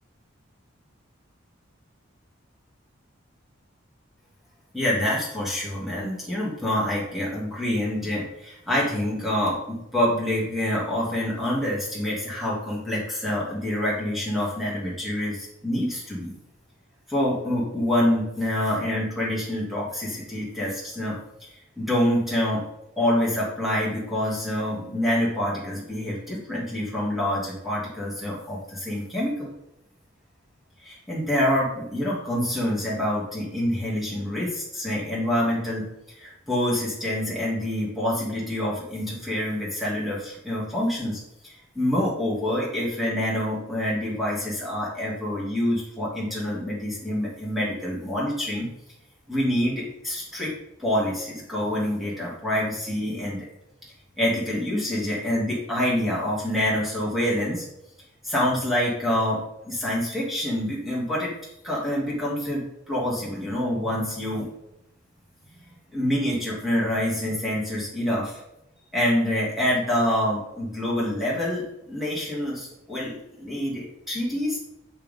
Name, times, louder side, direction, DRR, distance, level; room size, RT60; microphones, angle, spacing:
voice 1, 4.7-16.3 17.1-21.2 21.8-22.6 23.0-29.5 30.8-48.7 49.3-50.5 50.8-53.5 54.2-57.6 58.2-61.3 61.6-64.5 65.9-68.4 68.9-74.6, left 1 dB, ahead, -6 dB, 2.7 m, -26 dB
7.6 x 6.8 x 3.8 m, 0.85 s
head